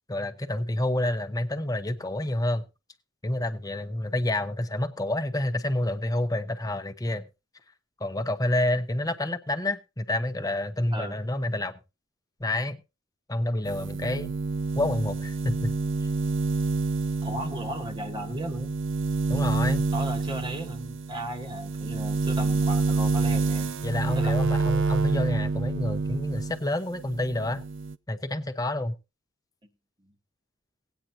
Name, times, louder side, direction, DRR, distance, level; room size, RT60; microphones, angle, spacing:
voice 1, 0.1-2.6 3.2-7.3 8.0-11.8 12.4-12.8 13.3-14.3 14.8-15.7 19.3-19.9 23.8-27.6 28.1-28.9, left 1 dB, 20° left, 0.9 m, -28 dB
sound 1, 13.7-26.6 26.9-28.0, right 3 dB, 65° right, 0.5 m, -28 dB
voice 2, 17.2-18.8 19.9-23.7 24.1-24.6 29.6-29.7 30.0-30.1, equal, 25° right, 1.4 m, -36 dB
18.0 x 9.2 x 2.8 m
head